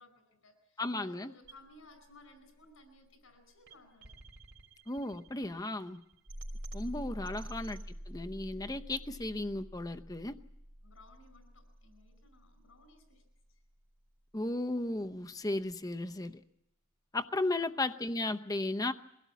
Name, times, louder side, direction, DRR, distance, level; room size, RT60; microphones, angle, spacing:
voice 1, 0.0-4.2 10.8-13.6 17.6-17.8, left 2 dB, 85° left, 8 dB, 4.8 m, -60 dB
voice 2, 0.8-1.3 4.9-6.0 6.7-7.8 8.1-10.4 14.3-16.4 17.1-18.9, left 2 dB, 20° left, 8 dB, 0.8 m, -35 dB
sound 1, 1.4-13.5, equal, 65° right, 3.3 m, -48 dB
23.0 x 16.5 x 8.3 m, 0.84 s
head